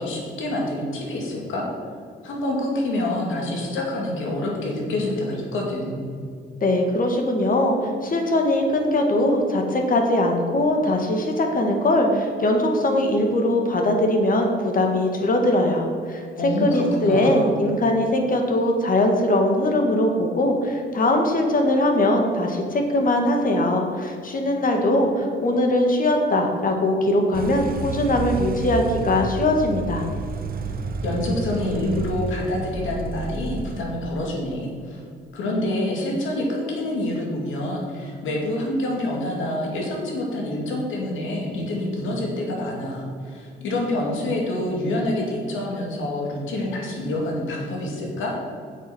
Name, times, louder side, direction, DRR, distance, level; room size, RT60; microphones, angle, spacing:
voice 1, 0.0-1.7 2.2-6.1 16.4-17.6 30.6-30.8 31.0-35.0 35.3-48.4, left 1 dB, 80° left, -1 dB, 2.5 m, -27 dB
voice 2, 6.6-7.8 8.0-16.2 16.6-30.0, left 1 dB, 45° left, 3 dB, 1.7 m, -21 dB
sound 1, 27.3-33.8, right 4 dB, 50° right, 0.8 m, -30 dB
8.0 x 6.5 x 6.2 m, 2.2 s
cardioid pair, 90°, 20 cm